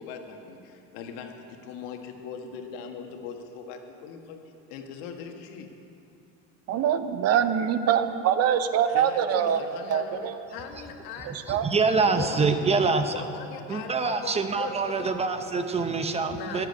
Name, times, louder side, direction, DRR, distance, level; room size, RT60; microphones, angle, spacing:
voice 1, 0.0-4.4 4.7-5.7 8.9-11.6 12.0-12.4 13.0-15.1 16.3-16.7, left 6 dB, 75° left, 4 dB, 1.6 m, -40 dB
voice 2, 6.7-9.6 9.9-10.4 11.5-11.7, right 9 dB, 45° right, 10 dB, 0.8 m, -24 dB
voice 3, 11.5-13.1 13.7-16.7, right 4 dB, 20° right, 8 dB, 0.7 m, -25 dB
12.0 x 7.8 x 9.7 m, 2.7 s
supercardioid pair, 130°, 34 cm